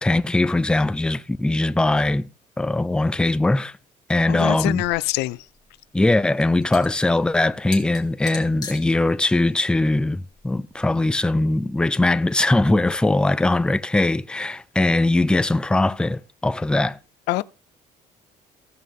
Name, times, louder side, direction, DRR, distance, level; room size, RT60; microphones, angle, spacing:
voice 1, 0.0-2.3 2.6-3.7 4.1-4.8 5.9-17.0, left 2 dB, 5° left, 0.4 m, -21 dB
voice 2, 4.3-5.4 17.3-17.4, left 19 dB, 90° left, 0.4 m, -24 dB
sound 1, 5.1-10.9, left 4 dB, 25° left, 2.2 m, -42 dB
16.5 x 5.5 x 3.7 m
cardioid pair, 110°, 17 cm